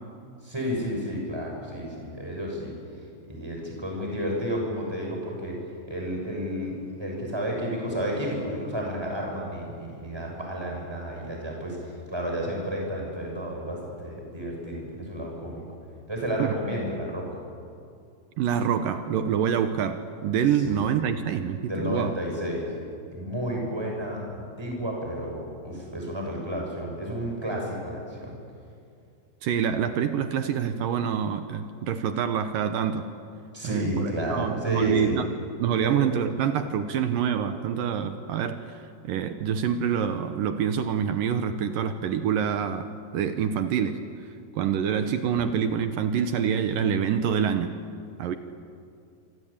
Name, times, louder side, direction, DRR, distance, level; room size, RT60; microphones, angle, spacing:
voice 1, 0.4-2.7 3.3-5.6 5.9-15.6 16.1-17.3 20.5-20.9 21.6-22.7 23.1-28.3 33.5-35.2 35.8-36.0 45.4-45.5, equal, 5° right, 0 dB, 6.5 m, -31 dB
voice 2, 18.4-22.2 29.4-33.0 33.6-35.3 35.6-38.8 39.0-42.9 43.1-44.0 44.6-47.7 48.2-48.3, right 8 dB, 70° right, 9 dB, 2.2 m, -26 dB
27.0 x 25.0 x 8.7 m, 2.4 s
omnidirectional pair, 4.9 m